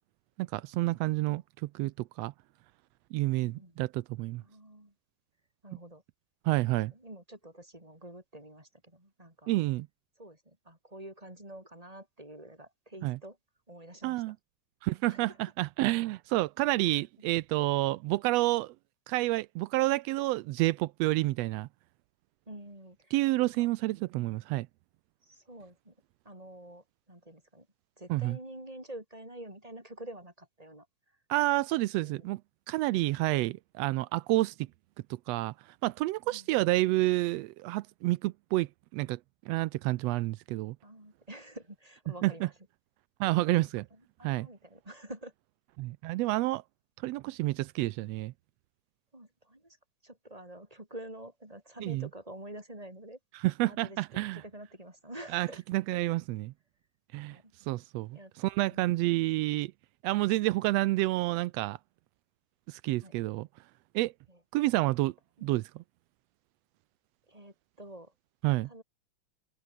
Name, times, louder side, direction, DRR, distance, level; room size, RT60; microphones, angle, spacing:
voice 1, 0.4-2.3 3.1-4.4 6.4-6.9 9.5-9.9 13.0-13.2 14.0-14.4 14.8-18.7 19.1-21.7 23.1-24.7 28.1-28.4 31.3-32.4 32.7-34.7 35.3-35.5 35.8-39.2 39.5-40.8 42.2-42.5 43.2-43.8 44.2-44.5 45.8-46.6 47.0-48.3 51.8-52.1 53.4-54.4 55.3-56.5 57.1-57.4 57.7-59.7 60.0-61.8 62.7-63.5 63.9-64.1 64.5-65.1 65.4-65.8 68.4-68.7, right 18 dB, 85° right, 1.4 m, -29 dB
voice 2, 3.4-3.9 4.4-4.9 5.6-6.0 6.9-9.5 10.2-13.4 13.7-14.3 15.1-15.4 16.9-17.0 22.5-23.1 23.4-23.7 25.2-25.9 26.2-27.7 28.0-30.9 31.8-32.3 36.3-36.5 40.8-42.5 43.5-43.6 43.9-45.3 49.1-49.8 50.0-53.2 53.7-54.0 54.3-55.6 57.3-57.5 58.1-58.3 58.7-59.0 63.0-63.1 64.3-64.4 65.4-65.5 67.3-68.1 68.6-68.8, right 1 dB, 10° right, 6.5 m, -48 dB
omnidirectional pair, 3.6 m